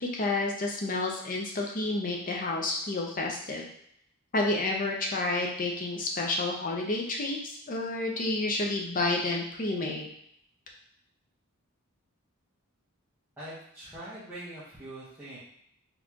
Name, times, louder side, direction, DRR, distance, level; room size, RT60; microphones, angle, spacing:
voice 1, 0.0-3.7 4.3-10.1, left 2 dB, 40° left, 0 dB, 0.7 m, -30 dB
voice 2, 13.4-15.4, right 1 dB, 10° right, -12 dB, 1.1 m, -43 dB
4.2 x 3.3 x 2.9 m, 0.70 s
head